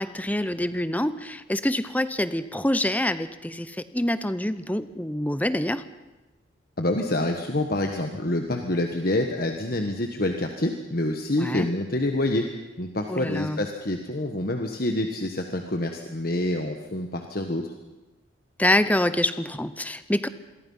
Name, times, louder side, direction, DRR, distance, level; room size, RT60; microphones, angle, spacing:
voice 1, 0.0-5.8 11.4-11.7 13.1-13.6 18.6-20.3, left 1 dB, 10° left, 13 dB, 0.8 m, -26 dB
voice 2, 6.8-12.4 12.8-17.7, left 1 dB, 50° left, 4 dB, 1.4 m, -27 dB
26.5 x 22.5 x 5.6 m, 1.1 s
head